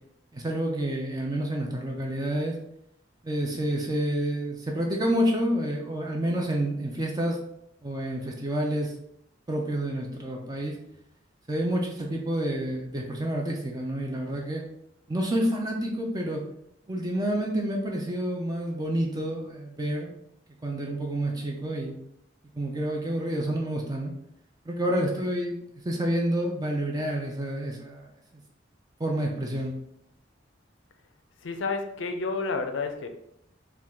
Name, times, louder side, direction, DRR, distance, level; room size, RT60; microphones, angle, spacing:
voice 1, 0.3-2.6 3.2-7.4 7.8-8.9 9.5-10.8 11.5-14.6 15.1-16.4 16.9-20.1 20.6-22.0 22.5-24.1 24.7-25.6 25.8-28.1 29.0-29.7, right 1 dB, 20° right, 0 dB, 0.5 m, -29 dB
voice 2, 31.4-33.1, left 4 dB, 85° left, 6 dB, 0.6 m, -30 dB
4.7 x 2.4 x 3.6 m, 0.76 s
head